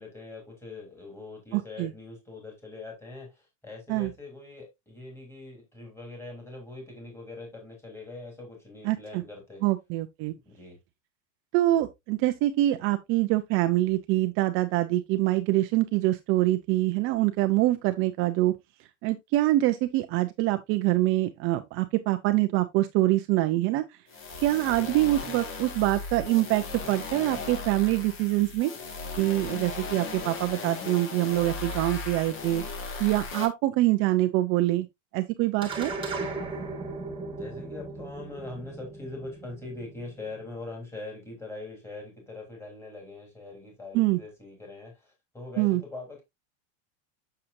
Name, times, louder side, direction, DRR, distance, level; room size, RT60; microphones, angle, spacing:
voice 1, 0.0-9.6 10.4-10.8 37.3-46.2, left 2 dB, 5° left, 3.1 m, -42 dB
voice 2, 1.5-1.9 3.9-4.1 8.8-9.2 9.6-10.3 11.5-18.5 19.0-23.8 24.4-28.7 29.2-32.6 33.0-34.9 35.1-35.9 43.9-44.2 45.6-45.8, right 16 dB, 35° right, 0.5 m, -25 dB
sound 1, 24.1-33.5, left 4 dB, 35° left, 1.7 m, -37 dB
sound 2, 35.6-40.2, right 3 dB, 15° right, 1.6 m, -37 dB
7.0 x 6.6 x 2.6 m
supercardioid pair, 150°, 37 cm